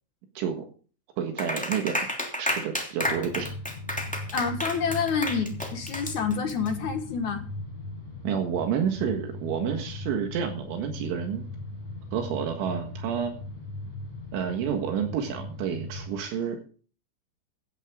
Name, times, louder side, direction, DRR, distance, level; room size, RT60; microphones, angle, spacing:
voice 1, 0.4-0.7 1.2-2.0 2.4-3.5 8.2-11.5 12.1-13.3 14.3-16.6, right 8 dB, 75° right, 4 dB, 4.0 m, -29 dB
Clapping, 1.4-6.7, equal, 5° left, 1.2 m, -31 dB
sound 1, 3.0-16.2, left 2 dB, 35° left, 8.1 m, -39 dB
voice 2, 4.3-7.4, left 6 dB, 60° left, 6 dB, 2.1 m, -28 dB
17.0 x 13.5 x 3.7 m, 0.40 s
omnidirectional pair, 5.6 m